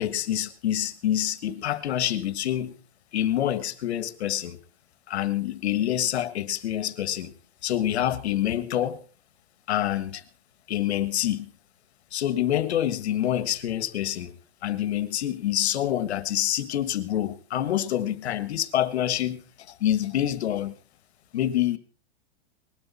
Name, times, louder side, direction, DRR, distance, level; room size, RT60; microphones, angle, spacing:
voice 1, 0.0-2.7 3.1-4.6 5.1-7.3 7.6-9.0 9.7-10.2 10.7-11.5 12.1-14.4 14.6-19.4 19.8-20.7 21.3-21.8, left 11 dB, 70° left, 1.5 m, -26 dB
20.5 x 12.5 x 4.2 m
supercardioid pair, 165°, 33 cm